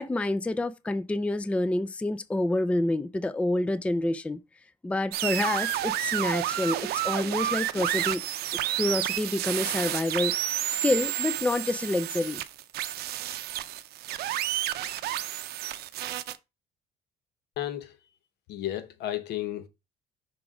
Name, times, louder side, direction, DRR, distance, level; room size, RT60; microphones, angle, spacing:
voice 1, 0.0-4.4 4.8-8.2 8.7-10.4 10.8-12.4, left 2 dB, 5° left, 0.4 m, -28 dB
sound 1, 5.1-16.4, right 13 dB, 70° right, 0.6 m, -30 dB
voice 2, 17.6-18.0 18.5-19.7, left 13 dB, 75° left, 1.0 m, -33 dB
5.9 x 3.8 x 4.8 m
cardioid pair, 110°, 17 cm